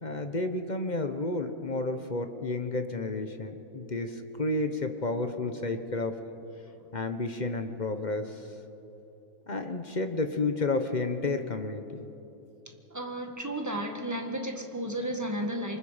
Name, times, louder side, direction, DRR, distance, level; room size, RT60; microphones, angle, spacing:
voice 1, 0.0-6.2 6.9-8.5 9.5-11.9, left 2 dB, 30° left, 7 dB, 1.1 m, -31 dB
voice 2, 12.9-15.8, right 1 dB, 10° right, 3 dB, 1.6 m, -33 dB
27.0 x 25.0 x 5.1 m, 2.9 s
omnidirectional pair, 1.6 m